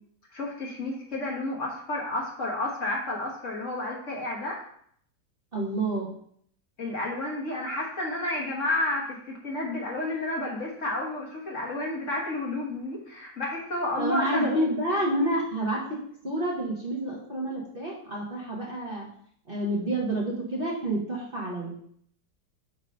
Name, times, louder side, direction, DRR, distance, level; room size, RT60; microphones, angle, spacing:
voice 1, 0.3-4.6 6.8-9.2 9.4-14.6, left 2 dB, 45° left, -2 dB, 1.5 m, -31 dB
voice 2, 5.5-6.1 14.0-15.8 16.2-19.1 19.5-21.8, right 1 dB, 35° right, -4 dB, 1.3 m, -29 dB
7.6 x 3.0 x 5.2 m, 0.64 s
omnidirectional pair, 1.9 m